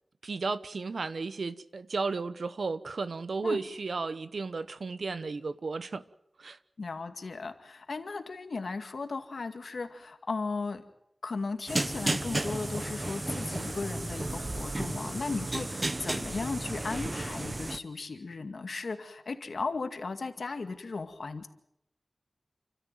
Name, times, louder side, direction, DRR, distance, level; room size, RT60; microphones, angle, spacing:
voice 1, 0.2-6.0 6.4-6.6, right 4 dB, 85° right, 1.0 m, -34 dB
voice 2, 6.8-10.8 11.2-21.5, left 4 dB, 80° left, 2.2 m, -36 dB
sound 1, 11.7-17.8, right 2 dB, 35° right, 1.2 m, -33 dB
30.0 x 13.5 x 9.2 m
wide cardioid pair, 65°, 0 cm